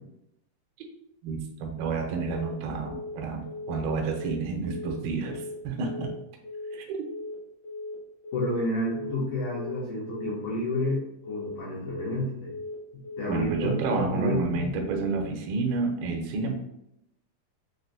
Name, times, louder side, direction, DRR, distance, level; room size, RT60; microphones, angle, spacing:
voice 1, 1.2-6.1 6.7-7.0 13.3-16.5, right 4 dB, 80° right, 1 dB, 2.3 m, -30 dB
Telephone, 2.2-2.5 2.8-3.1 3.4-3.7 4.0-4.3 4.6-4.9 5.2-5.5 5.8-6.1 6.4-6.7 7.0-7.3 7.6-7.9 8.2-8.5 8.8-9.1 9.4-9.7 10.0-10.3 10.6-10.9 11.2-11.5 11.8-12.1 12.4-12.7 13.0-13.3, left 2 dB, 55° left, 1.6 m, -38 dB
voice 2, 8.3-12.5 13.2-14.7, left 1 dB, 75° left, -5 dB, 1.9 m, -30 dB
6.0 x 2.1 x 2.5 m, 0.81 s
omnidirectional pair, 4.5 m